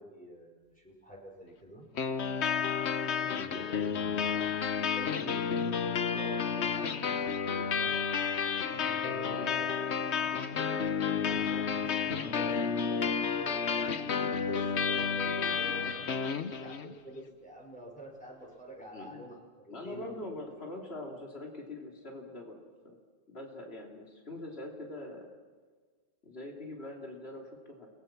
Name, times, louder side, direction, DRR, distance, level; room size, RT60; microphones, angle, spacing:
voice 1, 0.0-1.9 3.3-4.7 4.9-8.0 8.6-10.4 11.0-20.1, equal, 5° left, -2 dB, 5.4 m, -48 dB
sound 1, 2.0-16.9, left 6 dB, 90° left, 1.3 m, -31 dB
voice 2, 18.9-19.3 19.7-22.6 22.8-23.0 23.3-25.3 26.2-27.9, left 2 dB, 70° left, 0 dB, 3.3 m, -43 dB
29.5 x 20.0 x 6.0 m, 1.5 s
omnidirectional pair, 1.1 m